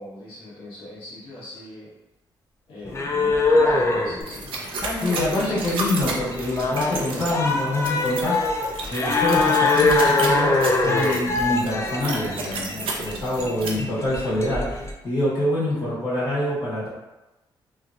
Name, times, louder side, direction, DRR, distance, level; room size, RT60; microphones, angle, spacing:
voice 1, 0.0-1.9 2.7-4.5 5.2-5.6 7.4-7.6 13.4-14.0 15.7-15.9, left 1 dB, 80° left, -9 dB, 1.3 m, -39 dB
sound 1, 2.9-14.9, left 3 dB, 30° left, 0.4 m, -23 dB
sound 2, 4.2-13.7, right 3 dB, 85° right, 0.5 m, -33 dB
voice 2, 4.9-8.5 8.9-14.7 15.0-16.9, left 1 dB, 50° left, -9 dB, 1.4 m, -26 dB
3.0 x 2.7 x 2.4 m, 1.0 s
cardioid pair, 95°, 9 cm